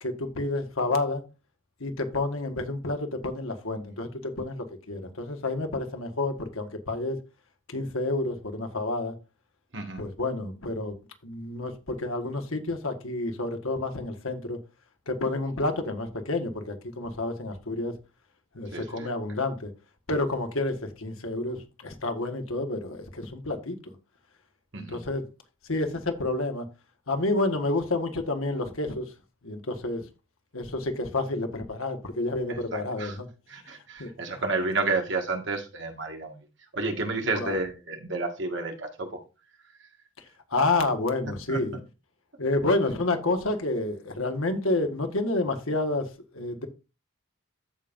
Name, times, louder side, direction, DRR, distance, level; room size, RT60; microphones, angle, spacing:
voice 1, 0.0-1.2 1.8-7.2 7.7-9.1 10.0-11.0 11.2-14.6 15.1-18.0 18.5-19.7 20.1-23.8 24.8-25.3 25.7-26.7 27.1-29.1 29.4-30.0 30.5-33.3 34.0-34.4 37.3-37.6 40.5-41.8 42.4-46.7, left 2 dB, 80° left, 1.6 m, -29 dB
voice 2, 9.7-10.0 18.7-19.1 24.7-25.0 32.5-33.2 33.5-36.5 36.7-39.2 41.5-41.6, right 3 dB, 60° right, 1.9 m, -31 dB
14.5 x 5.2 x 2.6 m
head